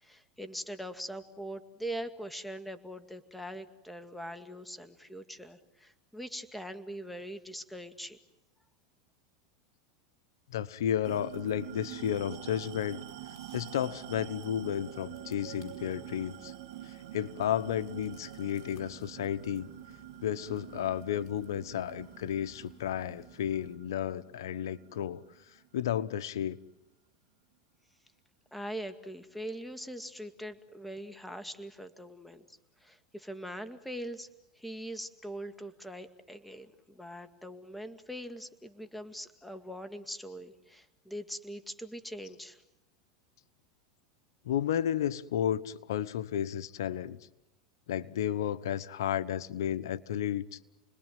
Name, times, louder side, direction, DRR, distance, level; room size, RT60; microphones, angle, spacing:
voice 1, 0.0-8.2 28.5-34.3 34.6-42.6, equal, ahead, 2.0 m, -42 dB
voice 2, 10.5-13.0 13.5-16.5 16.8-19.7 20.2-25.2 25.7-26.6 44.4-47.2 47.9-50.6, left 10 dB, 85° left, 1.0 m, -32 dB
sound 1, 11.0-23.8, left 4 dB, 50° left, 5.3 m, -58 dB
sound 2, 11.0-25.9, right 14 dB, 70° right, 2.1 m, -46 dB
29.5 x 21.0 x 9.2 m
supercardioid pair, 125°, 2 cm